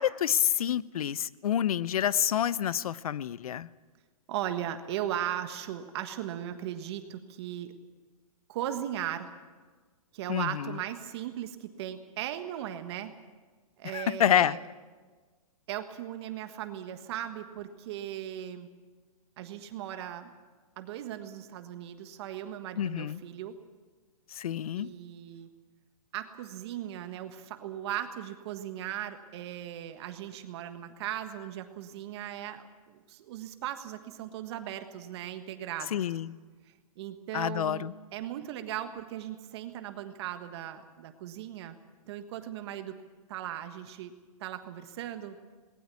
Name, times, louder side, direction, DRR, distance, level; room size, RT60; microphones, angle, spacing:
voice 1, 0.0-3.7 10.3-10.8 13.9-14.6 22.8-23.2 24.3-24.9 35.9-36.4 37.3-37.9, left 10 dB, 70° left, 19 dB, 0.7 m, -28 dB
voice 2, 4.3-7.7 8.5-9.3 10.1-13.1 13.8-14.6 15.7-18.7 19.4-20.3 20.8-23.6 24.7-25.5 26.1-36.0 36.6-41.7 42.1-43.0 43.3-44.1 44.4-45.4, right 11 dB, 45° right, 8 dB, 1.5 m, -38 dB
19.5 x 18.5 x 8.4 m, 1.4 s
hypercardioid pair, 145°, 19 cm